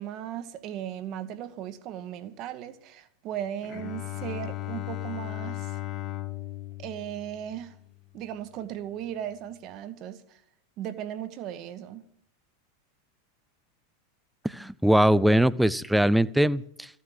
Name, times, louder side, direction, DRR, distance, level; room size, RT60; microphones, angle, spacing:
voice 1, 0.0-5.8 6.8-7.8 8.1-10.4 10.8-12.0, right 10 dB, 40° right, 1.2 m, -37 dB
Bowed string instrument, 3.6-8.1, left 15 dB, 35° left, 1.2 m, -37 dB
voice 2, 14.4-16.9, equal, ahead, 0.5 m, -22 dB
14.5 x 9.6 x 7.7 m
figure-of-eight pair, 90°, 0 cm